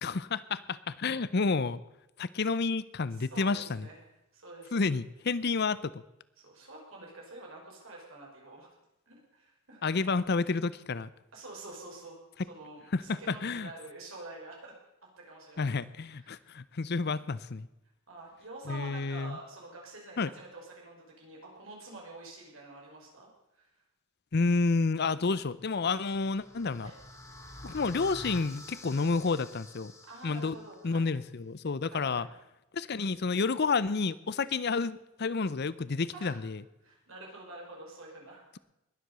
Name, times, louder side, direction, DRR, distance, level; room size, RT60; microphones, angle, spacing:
voice 1, 0.0-1.8 2.2-3.9 4.7-6.0 9.8-11.1 12.9-13.7 15.6-17.7 18.7-19.4 20.2-20.3 24.3-26.9 27.6-29.9 30.2-30.6 30.8-32.3 32.7-36.6, left 4 dB, 50° left, 17 dB, 0.6 m, -30 dB
voice 2, 3.2-4.0 4.3-4.9 6.4-8.7 9.1-9.8 11.3-12.2 12.5-14.7 15.2-15.7 16.1-16.5 18.1-23.3 23.5-23.7 26.8-27.0 30.1-31.1 31.9-32.3 36.1-36.4 36.8-38.5, right 2 dB, 70° right, -1 dB, 5.5 m, -47 dB
sound 1, 25.8-30.9, left 1 dB, 15° left, 2.4 m, -48 dB
20.5 x 8.0 x 6.8 m, 0.92 s
head